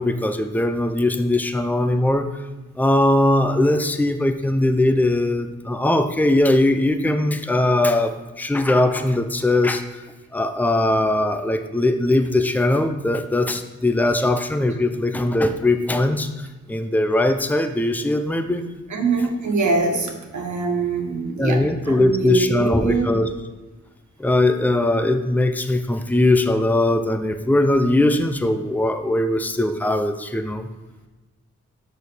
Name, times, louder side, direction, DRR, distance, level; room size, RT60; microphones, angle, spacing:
voice 1, 0.0-2.3 2.8-8.1 8.4-10.0 10.3-18.6 21.4-23.3 24.2-30.7, left 1 dB, 5° left, 7 dB, 0.8 m, -20 dB
voice 2, 18.9-23.1, right 4 dB, 70° right, 2 dB, 1.6 m, -24 dB
6.7 x 5.2 x 6.3 m, 1.2 s
cardioid pair, 50°, 30 cm